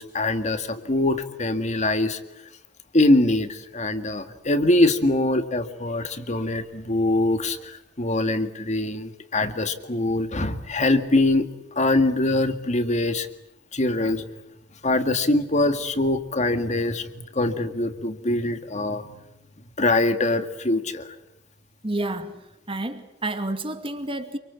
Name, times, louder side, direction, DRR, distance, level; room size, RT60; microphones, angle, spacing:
voice 1, 0.0-2.2 2.9-11.5 11.8-13.3 13.7-14.2 14.8-19.2 19.8-21.2, left 2 dB, 40° left, 2.1 m, -23 dB
voice 2, 21.8-22.4 22.7-24.4, right 1 dB, 30° right, 2.4 m, -29 dB
28.5 x 24.5 x 8.5 m
head